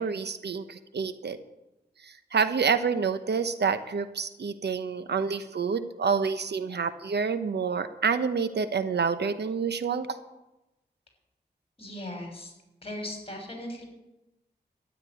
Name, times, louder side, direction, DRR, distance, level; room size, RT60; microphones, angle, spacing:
voice 1, 0.0-1.4 2.0-10.2, right 5 dB, 75° right, 11 dB, 1.1 m, -28 dB
voice 2, 11.8-12.5 12.8-13.8, left 1 dB, 35° left, 2 dB, 6.2 m, -38 dB
13.0 x 11.0 x 9.3 m, 0.98 s
wide cardioid pair, 70°, 17 cm